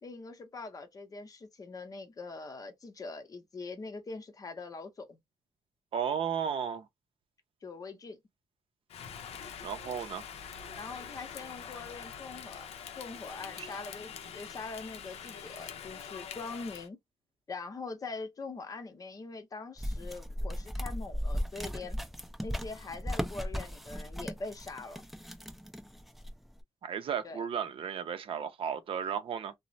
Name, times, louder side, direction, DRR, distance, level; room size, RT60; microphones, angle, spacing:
voice 1, 0.0-5.2 7.6-8.2 10.8-12.7 13.0-17.0 17.5-22.0 22.4-25.0 27.2-27.4, left 3 dB, 35° left, 0.7 m, -43 dB
voice 2, 5.9-6.9 9.6-10.2 13.6-13.7 26.8-29.5, right 7 dB, 60° right, 0.5 m, -34 dB
Rain, 8.9-16.9, left 7 dB, 75° left, 0.5 m, -44 dB
sound 1, 19.8-26.5, equal, ahead, 0.5 m, -37 dB
3.0 x 2.0 x 2.6 m
cardioid pair, 120°, 11 cm